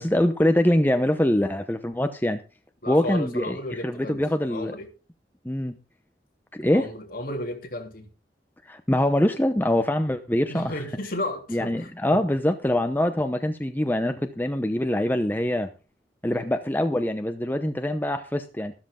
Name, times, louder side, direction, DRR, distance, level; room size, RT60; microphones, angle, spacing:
voice 1, 0.0-2.4 2.9-4.8 5.4-5.8 6.5-6.9 8.7-10.8 11.5-15.7 16.2-18.7, left 1 dB, 10° left, 0.8 m, -24 dB
voice 2, 2.8-4.2 4.5-4.9 6.7-8.1 10.5-11.7 12.1-12.2 16.3-16.5, left 1 dB, 55° left, 3.1 m, -33 dB
14.0 x 13.0 x 3.7 m
head